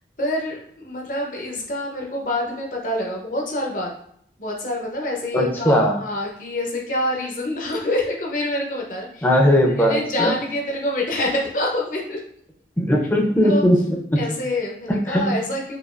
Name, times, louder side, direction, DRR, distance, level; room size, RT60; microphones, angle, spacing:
voice 1, 0.2-4.0 4.4-9.4 9.6-12.2 13.4-13.6 14.2-15.8, left 1 dB, 45° left, -1 dB, 0.8 m, -26 dB
voice 2, 5.3-5.9 9.2-10.4 12.8-14.2 15.1-15.3, equal, 10° left, -1 dB, 0.6 m, -18 dB
5.0 x 2.5 x 2.5 m, 0.67 s
head